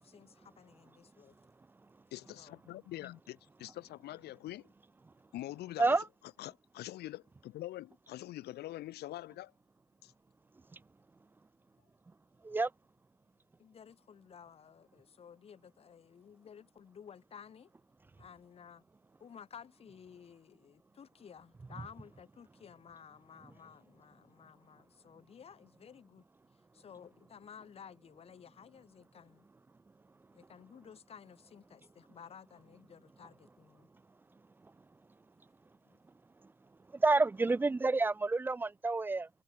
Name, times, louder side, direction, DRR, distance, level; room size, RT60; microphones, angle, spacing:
voice 1, 0.0-1.4 2.4-2.6 13.6-17.7 18.2-18.8 19.2-26.2 26.7-29.5 30.3-33.9 35.9-36.0, left 7 dB, 35° left, 1.2 m, -54 dB
voice 2, 2.1-4.7 5.3-6.0 6.4-9.5 10.0-10.1, left 15 dB, 75° left, 1.8 m, -44 dB
voice 3, 36.9-39.3, right 3 dB, 10° right, 0.3 m, -29 dB
cardioid pair, 110°, 17 cm